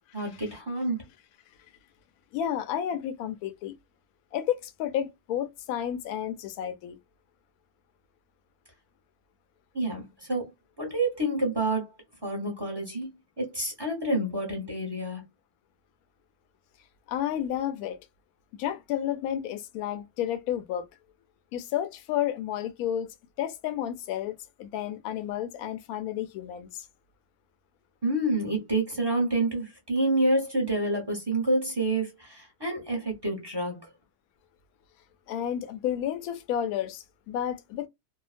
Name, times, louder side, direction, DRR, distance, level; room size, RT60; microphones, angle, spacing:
voice 1, 0.1-1.1 9.7-10.4 10.8-11.9 12.2-13.1 13.4-15.2 28.0-33.9, right 2 dB, 20° right, 0.8 m, -28 dB
voice 2, 2.3-3.7 4.3-7.0 17.1-18.0 18.6-20.8 21.5-23.1 23.4-26.8 35.3-37.9, left 10 dB, 75° left, 1.0 m, -31 dB
2.8 x 2.1 x 2.4 m
omnidirectional pair, 1.7 m